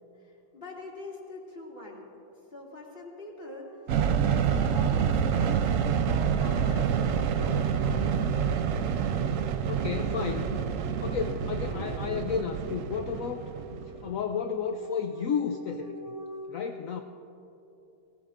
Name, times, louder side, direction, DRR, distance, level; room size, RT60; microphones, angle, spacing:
voice 1, 0.2-2.1 2.5-3.8 4.3-5.7 6.1-6.9 7.3-8.6, left 1 dB, 30° left, -4 dB, 2.5 m, -43 dB
sound 1, 3.5-5.8 7.0-16.5, equal, 10° left, 2.9 m, -46 dB
sound 2, 3.9-14.1, right 7 dB, 90° right, 0.7 m, -27 dB
voice 2, 9.3-10.5 11.0-15.9 16.5-17.0, left 6 dB, 80° left, 5 dB, 0.7 m, -32 dB
19.0 x 18.0 x 2.6 m, 2.9 s
omnidirectional pair, 2.1 m